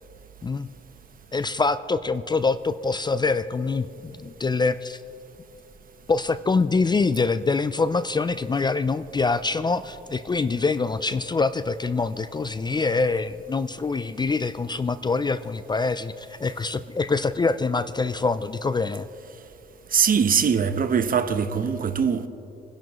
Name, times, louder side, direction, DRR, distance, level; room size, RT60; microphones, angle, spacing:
voice 1, 1.3-5.0 6.1-19.1, left 4 dB, 20° left, 0.4 m, -25 dB
voice 2, 19.9-22.3, right 6 dB, 45° right, 0.9 m, -22 dB
25.5 x 10.5 x 3.1 m
cardioid pair, 90°, 20 cm